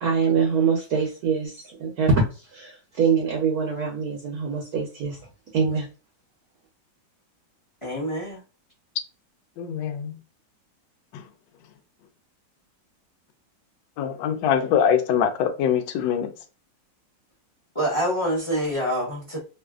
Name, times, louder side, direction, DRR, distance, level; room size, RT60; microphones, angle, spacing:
voice 1, 0.0-5.2 5.5-5.9, right 5 dB, 65° right, 1.0 m, -24 dB
voice 2, 7.8-8.4 17.7-19.4, equal, 20° left, 0.8 m, -26 dB
voice 3, 9.6-10.2 11.1-11.2 14.0-16.3, left 8 dB, 75° left, 1.2 m, -23 dB
3.2 x 2.5 x 2.3 m
omnidirectional pair, 2.2 m